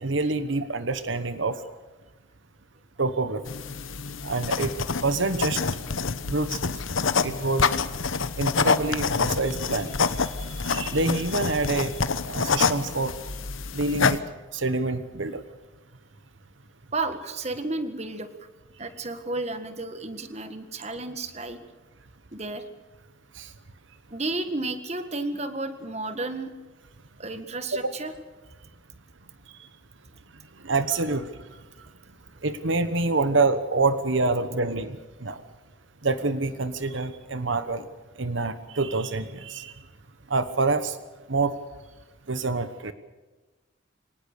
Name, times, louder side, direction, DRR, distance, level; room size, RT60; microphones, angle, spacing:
voice 1, 0.0-1.6 3.0-3.4 4.2-4.7 5.0-5.6 6.2-6.6 7.2-7.6 8.4-10.0 10.6-11.9 12.3-13.1 13.7-14.2 14.5-15.4 23.4-23.5 27.8-27.9 30.6-31.3 32.4-35.0 35.2-35.4 36.0-37.8 38.2-39.7 40.3-41.0 41.3-41.5 42.3-42.9, right 3 dB, 75° right, 11 dB, 1.3 m, -26 dB
sound 1, 3.5-14.2, left 5 dB, 90° left, 1.1 m, -27 dB
voice 2, 16.9-18.3 18.8-21.6 22.3-22.6 24.1-26.5 27.2-28.1, right 2 dB, 35° right, 9 dB, 1.7 m, -32 dB
24.5 x 19.5 x 6.7 m, 1.2 s
head